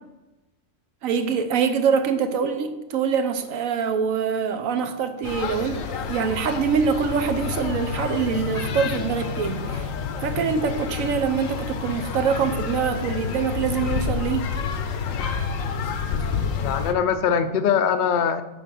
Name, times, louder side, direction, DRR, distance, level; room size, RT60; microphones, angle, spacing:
voice 1, 1.0-9.9 10.2-14.4, right 6 dB, 90° right, 8 dB, 1.1 m, -24 dB
sound 1, 5.2-16.9, left 6 dB, 80° left, 1.1 m, -29 dB
voice 2, 16.6-18.4, left 7 dB, 60° left, 10 dB, 0.5 m, -22 dB
9.3 x 3.7 x 6.0 m, 1.0 s
omnidirectional pair, 1.4 m